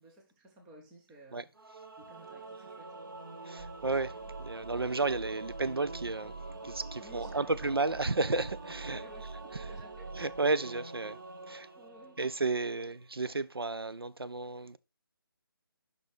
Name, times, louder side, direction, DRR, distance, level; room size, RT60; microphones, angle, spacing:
voice 1, 0.0-1.5 2.0-3.0 7.0-8.0 8.9-10.1 11.7-12.2, equal, 5° right, 0.4 m, -55 dB
Singing / Musical instrument, 1.5-12.8, right 2 dB, 60° right, 1.3 m, -46 dB
voice 2, 3.4-6.4 6.6-9.0 9.6-9.7 10.2-11.2 11.5-11.7 12.2-14.8, right 3 dB, 80° right, 0.5 m, -32 dB
sound 1, 3.6-10.4, right 4 dB, 30° right, 4.0 m, -46 dB
6.1 x 5.3 x 4.9 m
figure-of-eight pair, 155°, 13 cm